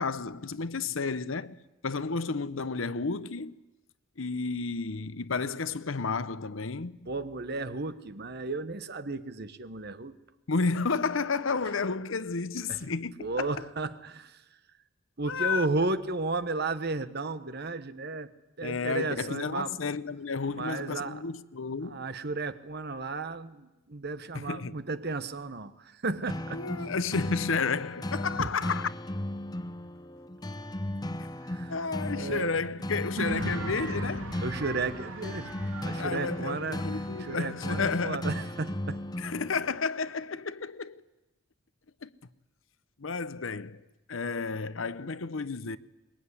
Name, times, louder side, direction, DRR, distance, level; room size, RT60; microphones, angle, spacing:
voice 1, 0.0-3.6 4.2-7.1 10.5-13.5 15.2-15.7 18.6-22.2 24.3-24.8 26.5-28.9 31.2-31.3 31.7-34.4 36.0-38.3 39.2-41.0 42.0-42.1 43.0-45.8, left 4 dB, 70° left, 0.8 m, -32 dB
voice 2, 7.1-10.1 12.7-12.8 13.2-14.4 15.2-18.3 18.6-19.7 20.5-21.2 21.8-26.6 28.4-28.5 31.4-31.7 32.1-32.5 34.4-35.5 35.8-36.8 37.2-39.0, right 3 dB, 50° right, 1.2 m, -33 dB
sound 1, 26.3-39.8, left 1 dB, 20° left, 0.8 m, -36 dB
sound 2, 33.2-38.4, right 2 dB, 70° right, 3.5 m, -39 dB
22.5 x 21.5 x 9.8 m
head